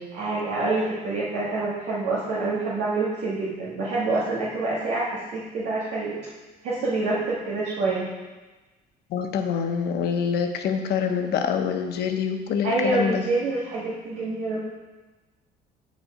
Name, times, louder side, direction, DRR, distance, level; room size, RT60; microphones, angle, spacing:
voice 1, 0.1-6.2 6.6-8.1 12.6-14.6, right 2 dB, 85° right, -8 dB, 1.8 m, -26 dB
voice 2, 9.1-13.2, left 7 dB, 70° left, 5 dB, 1.0 m, -25 dB
9.0 x 5.3 x 5.0 m, 1.2 s
cardioid pair, 110°, 17 cm